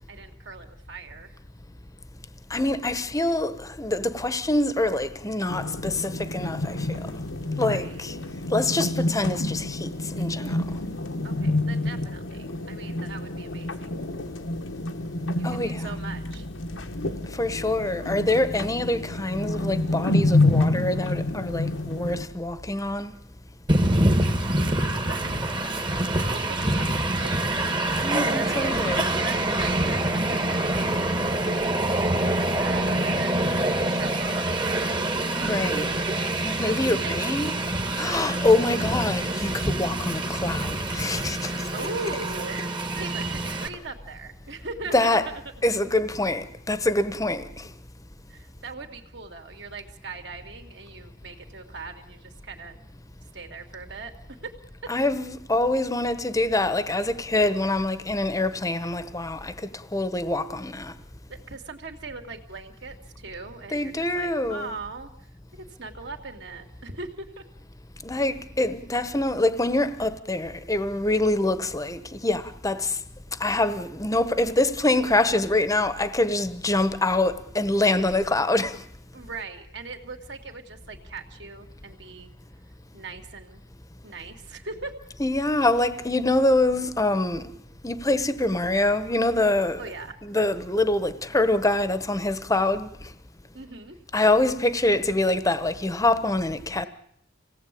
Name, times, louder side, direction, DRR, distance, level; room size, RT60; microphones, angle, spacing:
voice 1, 0.1-1.4 7.7-8.0 11.2-13.9 15.4-16.5 24.5-25.5 26.2-26.9 27.2-27.5 28.3-30.7 31.5-34.7 36.6-37.5 38.7-39.0 41.4-45.4 48.3-52.9 53.3-54.1 54.4-54.5 61.3-65.1 65.5-67.4 79.1-82.3 82.9-83.6 84.0-84.9 89.8-90.2 93.5-94.0, right 3 dB, 60° right, 2.8 m, -40 dB
voice 2, 2.5-7.0 7.6-8.1 8.5-10.6 15.4-16.0 17.4-23.1 28.0-29.2 35.4-36.0 36.4-37.5 38.0-41.5 44.9-45.4 45.6-47.7 54.9-60.9 63.7-64.7 68.0-73.0 73.4-78.8 85.2-87.5 87.8-89.9 90.2-93.0 94.1-96.8, left 2 dB, 15° left, 1.1 m, -25 dB
sound 1, 5.5-22.2, left 2 dB, 85° left, 1.5 m, -28 dB
Train, 23.7-43.7, right 1 dB, 25° right, 1.5 m, -26 dB
27.0 x 18.0 x 8.6 m
head